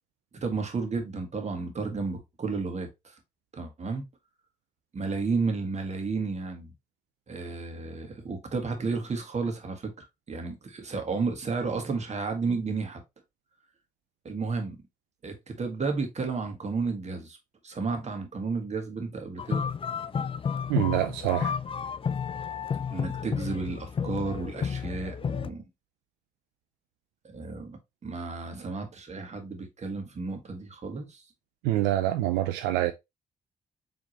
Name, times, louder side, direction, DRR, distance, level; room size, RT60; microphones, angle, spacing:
voice 1, 0.4-3.1 3.5-4.0 4.9-6.7 7.3-13.0 14.3-14.8 15.2-17.4 17.6-19.7 22.9-25.6 27.3-31.2, right 4 dB, 45° right, 1.7 m, -32 dB
sound 1, 19.4-25.5, left 6 dB, 35° left, 0.4 m, -31 dB
voice 2, 20.7-21.5 31.6-32.9, right 13 dB, 90° right, 0.4 m, -26 dB
4.8 x 3.5 x 3.0 m
hypercardioid pair, 45°, 16 cm